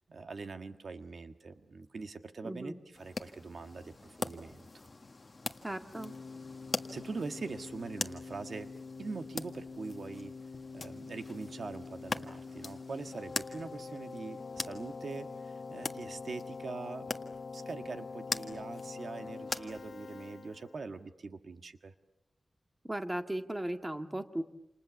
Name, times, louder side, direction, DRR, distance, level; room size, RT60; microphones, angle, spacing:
voice 1, 0.1-4.7 6.9-8.7 9.0-10.3 10.7-21.9, right 4 dB, 65° right, 8 dB, 1.5 m, -43 dB
voice 2, 2.4-2.8 5.6-6.1 22.9-24.4, right 1 dB, 15° right, 6 dB, 1.8 m, -36 dB
sound 1, 3.0-20.3, left 3 dB, 35° left, 1.6 m, -43 dB
Keyboard (musical), 5.9-21.0, left 4 dB, 65° left, 1.1 m, -45 dB
28.5 x 28.5 x 7.2 m, 0.82 s
wide cardioid pair, 120°, 0 cm